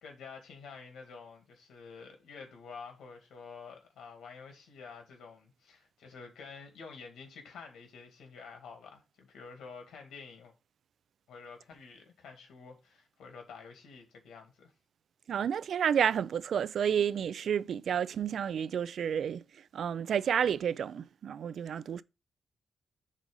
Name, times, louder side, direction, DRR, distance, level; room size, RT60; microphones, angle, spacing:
voice 1, 0.0-10.5 11.3-14.7, left 5 dB, 85° left, 2.2 m, -49 dB
voice 2, 15.3-19.4 19.7-22.0, right 8 dB, 65° right, 0.3 m, -30 dB
6.1 x 3.9 x 5.4 m
cardioid pair, 115°, 0 cm